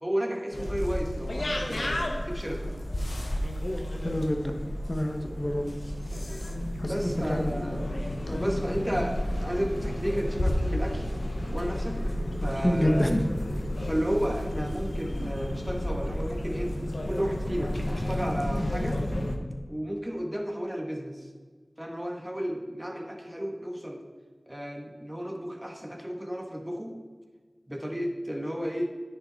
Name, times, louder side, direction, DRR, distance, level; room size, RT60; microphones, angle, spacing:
voice 1, 0.0-2.7 6.8-7.9 8.3-11.1 11.5-12.0 12.4-13.1 13.9-16.8 17.0-19.0 19.7-21.3 21.8-24.0 24.5-26.9 27.7-28.9, equal, 15° right, 2 dB, 1.4 m, -32 dB
sound 1, 0.5-19.4, left 1 dB, 75° left, 1.0 m, -31 dB
voice 2, 4.0-4.5 4.9-5.7 6.8-7.5 12.6-13.2, equal, 30° left, 4 dB, 1.1 m, -27 dB
9.7 x 5.6 x 4.1 m, 1.5 s
wide cardioid pair, 50°, 0 cm